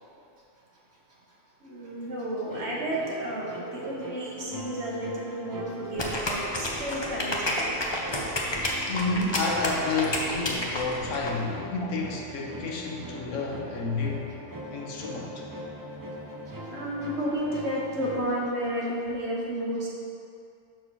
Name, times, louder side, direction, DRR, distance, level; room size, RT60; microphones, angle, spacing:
voice 1, 1.6-7.6 16.1-19.9, right 1 dB, 55° right, -4 dB, 1.4 m, -32 dB
sound 1, 2.5-18.5, equal, 25° right, 0.4 m, -41 dB
sound 2, 6.0-11.3, left 1 dB, 25° left, 0.6 m, -29 dB
voice 2, 8.9-14.3 14.7-15.5, left 3 dB, 65° left, -1 dB, 1.1 m, -30 dB
6.4 x 4.5 x 5.7 m, 2.4 s
omnidirectional pair, 1.4 m